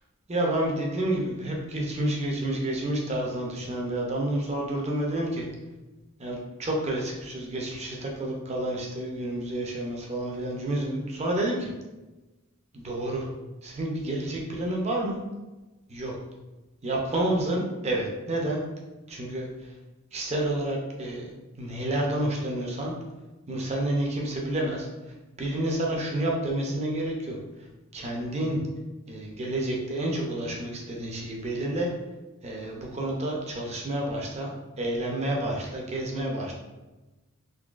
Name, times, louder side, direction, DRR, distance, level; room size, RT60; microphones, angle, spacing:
voice 1, 0.3-5.5 6.2-11.7 12.7-13.3 13.6-15.2 15.9-16.1 16.8-18.6 19.1-19.7 20.1-21.3 21.6-22.9 23.5-24.9 25.4-27.4 27.9-28.6 29.1-31.9 32.4-34.5 34.8-36.5, right 1 dB, 30° right, -1 dB, 0.6 m, -29 dB
3.8 x 2.7 x 2.4 m, 1.1 s
head